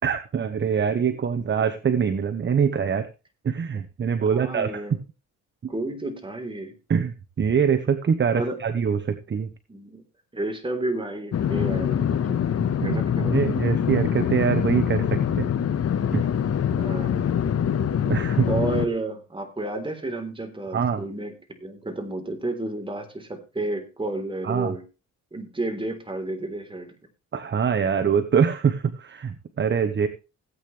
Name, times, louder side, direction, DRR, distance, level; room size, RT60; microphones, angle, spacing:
voice 1, 0.0-3.1 3.4-5.0 6.9-9.5 12.8-15.5 16.1-16.3 18.1-18.5 20.7-21.0 24.4-24.7 27.3-30.1, right 7 dB, 40° right, 10 dB, 1.1 m, -24 dB
voice 2, 4.2-5.0 5.7-6.7 8.3-8.6 9.7-10.0 10.3-12.5 12.8-13.6 16.8-17.3 18.5-21.3 21.6-24.8 25.3-26.9, right 2 dB, 15° right, 5 dB, 3.6 m, -31 dB
sound 1, 11.3-18.9, left 8 dB, 55° left, 1.3 m, -24 dB
17.0 x 8.8 x 3.3 m, 0.31 s
cardioid pair, 90°, 30 cm